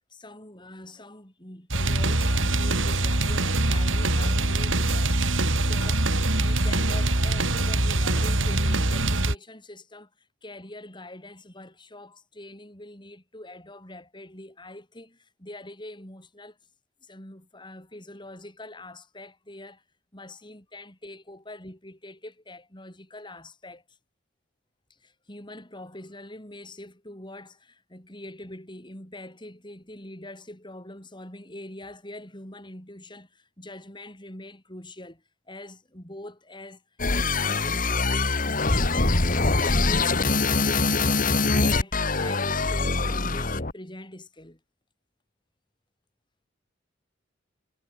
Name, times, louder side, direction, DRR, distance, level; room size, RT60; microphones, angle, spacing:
voice 1, 0.1-10.1 10.4-16.6 17.0-19.8 20.1-23.8 25.0-36.8 37.1-38.9 39.1-44.6, left 1 dB, 25° left, 7.5 m, -43 dB
sound 1, 1.7-9.4, right 2 dB, 80° right, 4.4 m, -23 dB
sound 2, 37.0-43.7, left 3 dB, 45° left, 2.2 m, -23 dB
head